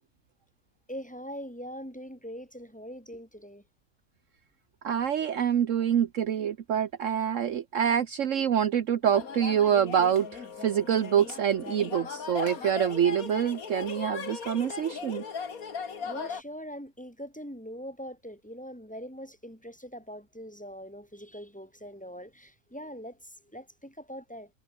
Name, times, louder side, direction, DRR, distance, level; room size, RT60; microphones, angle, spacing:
voice 1, 0.9-3.6 16.0-24.5, equal, 5° left, 7.9 m, -42 dB
voice 2, 4.8-15.2, right 9 dB, 65° right, 1.2 m, -26 dB
sound 1, 9.0-16.4, left 6 dB, 75° left, 2.3 m, -38 dB
omnidirectional pair, 1.5 m